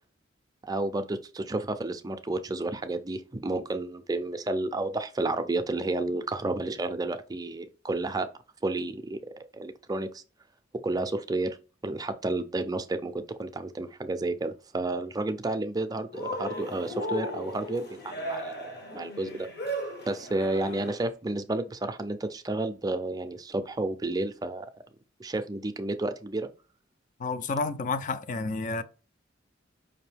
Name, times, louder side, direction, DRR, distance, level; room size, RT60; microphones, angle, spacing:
voice 1, 0.6-8.3 8.6-10.2 10.7-11.6 11.8-19.5 20.1-24.7 25.2-26.5, right 2 dB, 20° right, 0.4 m, -31 dB
Cheering, 16.1-21.1, equal, 55° left, 1.2 m, -36 dB
voice 2, 27.2-28.8, left 3 dB, 40° left, 0.4 m, -30 dB
5.2 x 2.7 x 3.4 m
head